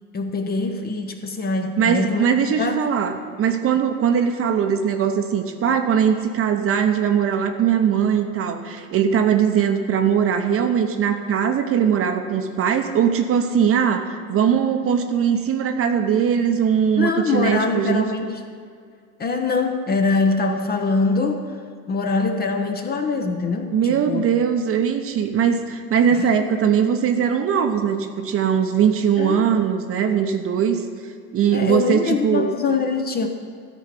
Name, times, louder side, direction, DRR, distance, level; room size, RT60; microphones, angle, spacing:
voice 1, 0.1-2.3 2.6-2.8 17.0-18.4 19.2-21.6 21.9-24.3 26.1-26.2 29.2-29.5 31.5-33.3, left 4 dB, 20° left, 5 dB, 0.8 m, -23 dB
voice 2, 1.8-18.1 23.7-30.8 31.3-32.5, right 7 dB, 30° right, 6 dB, 0.9 m, -20 dB
13.5 x 4.6 x 8.4 m, 2.2 s
hypercardioid pair, 90°, 46 cm